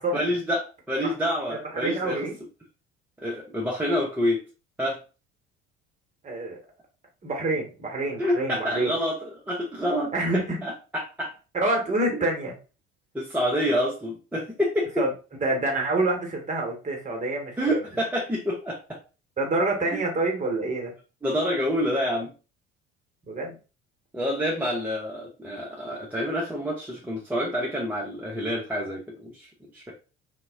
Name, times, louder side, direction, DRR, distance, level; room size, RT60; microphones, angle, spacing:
voice 1, 0.1-2.3 3.2-4.4 4.8-5.0 8.2-11.3 12.1-12.2 13.1-15.0 17.6-18.8 19.9-20.0 21.2-22.3 24.1-29.5 29.7-29.9, equal, 5° right, -4 dB, 0.5 m, -27 dB
voice 2, 1.5-2.3 6.2-6.6 7.2-8.9 10.1-10.6 11.5-12.5 15.0-15.1 15.4-17.8 19.4-20.9 23.3-23.5, right 2 dB, 20° right, 0 dB, 0.9 m, -27 dB
2.1 x 2.0 x 3.3 m, 0.33 s
figure-of-eight pair, 55°, 33 cm